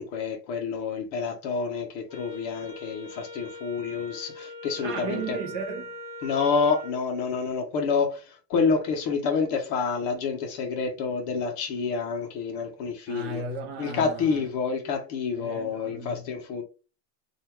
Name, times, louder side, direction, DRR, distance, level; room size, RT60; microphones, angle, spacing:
voice 1, 0.0-5.4 6.2-13.4 13.8-16.6, left 5 dB, 30° left, 0.6 m, -28 dB
Wind instrument woodwind instrument, 2.1-7.0, left 1 dB, 15° left, 1.0 m, -41 dB
voice 2, 4.8-5.9 13.1-14.5 15.4-16.3, right 4 dB, 35° right, 0.6 m, -35 dB
3.2 x 2.4 x 4.4 m
supercardioid pair, 165°, 48 cm